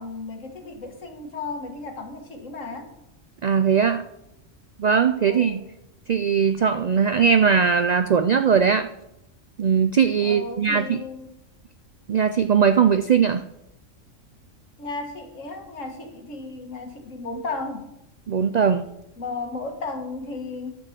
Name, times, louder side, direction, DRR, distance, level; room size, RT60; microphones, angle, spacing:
voice 1, 0.0-2.9 5.3-5.6 10.2-11.3 14.8-17.9 19.2-20.7, left 3 dB, 75° left, 5 dB, 1.9 m, -34 dB
voice 2, 3.4-4.0 4.8-5.6 6.1-8.9 9.6-11.0 12.1-13.4 18.3-18.9, right 6 dB, 70° right, 10 dB, 0.4 m, -20 dB
11.0 x 5.3 x 7.5 m, 0.84 s
omnidirectional pair, 1.3 m